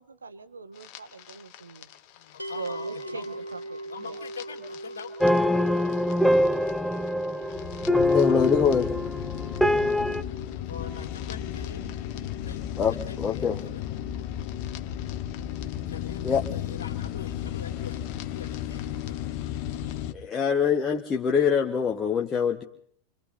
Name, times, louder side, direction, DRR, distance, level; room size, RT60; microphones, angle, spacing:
voice 1, 0.0-1.9 2.6-4.2, right 4 dB, 75° right, 1.5 m, -41 dB
sound 1, 0.8-20.1, left 11 dB, 45° left, 1.5 m, -35 dB
voice 2, 2.1-3.4 3.8-5.1 10.7-11.9 12.4-12.6 12.9-13.8 14.2-14.5 15.9-19.2, left 6 dB, 65° left, 2.2 m, -43 dB
sound 2, 2.4-13.6, right 1 dB, 90° left, 0.8 m, -43 dB
sound 3, 5.2-10.2, left 1 dB, ahead, 0.9 m, -24 dB
voice 3, 8.1-8.9 12.8-13.6 16.2-16.4 20.1-22.6, left 6 dB, 20° left, 1.6 m, -24 dB
28.5 x 25.5 x 4.2 m
figure-of-eight pair, 90°, 0 cm